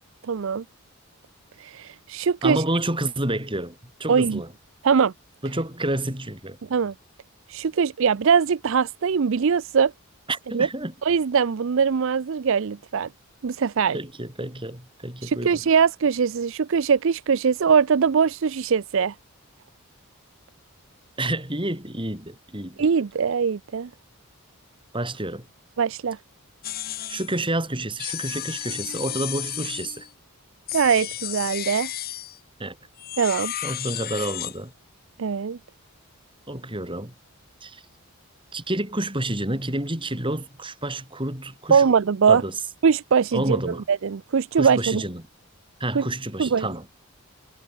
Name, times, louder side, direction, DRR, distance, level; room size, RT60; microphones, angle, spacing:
voice 1, 0.3-0.6 1.6-2.6 4.1-4.4 4.8-5.1 6.7-6.9 7.5-9.9 10.5-10.7 11.0-13.1 13.4-14.0 15.2-19.1 22.8-23.9 25.8-26.2 30.7-31.9 33.2-33.5 35.2-35.6 41.7-42.4 42.8-45.0 45.9-46.1 46.4-46.7, right 6 dB, 60° right, 0.4 m, -21 dB
voice 2, 2.4-4.5 5.4-6.6 10.3-10.9 13.9-15.6 21.2-22.9 24.9-25.5 27.1-30.1 32.6-32.8 33.6-34.7 36.5-37.1 37.6-37.8 38.5-41.8 42.3-42.5 43.3-43.8 44.6-45.2 45.8-46.9, right 1 dB, 20° right, 5.6 m, -29 dB
sound 1, 26.6-27.4 28.0-30.1 30.7-32.4 33.0-34.6, left 12 dB, 40° left, 1.3 m, -33 dB
head